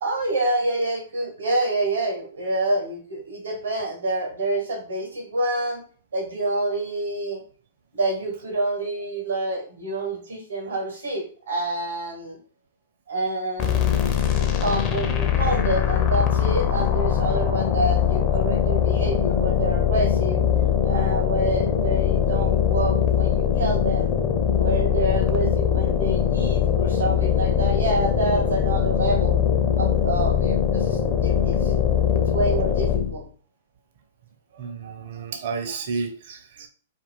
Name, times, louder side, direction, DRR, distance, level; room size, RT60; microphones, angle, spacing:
voice 1, 0.0-5.8 6.1-7.4 7.9-12.4 13.1-20.4 20.8-24.1 24.6-29.4 29.8-31.7 32.1-33.2, right 2 dB, 75° right, 1.0 m, -27 dB
sound 1, 13.6-33.2, left 8 dB, 30° left, 0.5 m, -22 dB
voice 2, 34.5-36.7, right 5 dB, 55° right, 0.6 m, -31 dB
2.5 x 2.4 x 3.5 m
figure-of-eight pair, 110°, 0 cm